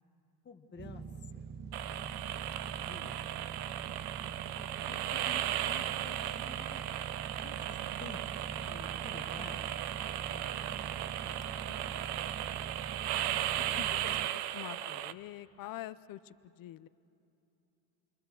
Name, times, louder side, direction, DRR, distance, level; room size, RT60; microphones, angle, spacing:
voice 1, 0.4-1.0 1.6-3.2 4.6-6.8 7.4-9.8 11.2-11.5 14.0-14.2 14.9-15.0, left 5 dB, 30° left, 3 dB, 1.2 m, -52 dB
sound 1, 0.8-14.3, right 6 dB, 25° right, 0.6 m, -44 dB
sound 2, 1.7-15.1, right 13 dB, 85° right, 0.7 m, -36 dB
voice 2, 10.2-11.2 11.6-12.1 13.7-14.1 14.5-16.9, left 14 dB, 60° left, 15 dB, 0.7 m, -47 dB
28.5 x 22.0 x 7.0 m, 2.8 s
cardioid pair, 140°, 38 cm